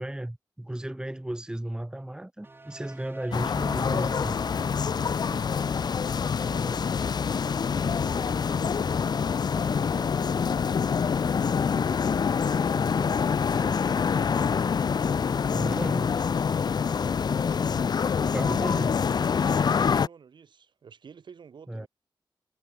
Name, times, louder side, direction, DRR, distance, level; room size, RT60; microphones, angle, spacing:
voice 1, 0.0-4.5 15.5-16.1 18.2-19.0 21.7-21.9, right 1 dB, 10° right, 1.3 m, -34 dB
sound 1, 2.4-10.2, right 2 dB, 30° right, 1.7 m, -47 dB
sound 2, 3.3-20.1, left 6 dB, 60° left, 0.6 m, -26 dB
voice 2, 5.1-7.1 7.7-11.0 12.4-14.8 15.4-16.3 16.9-17.2 19.7-21.9, right 6 dB, 75° right, 3.6 m, -49 dB
wide cardioid pair, 85°, 8 cm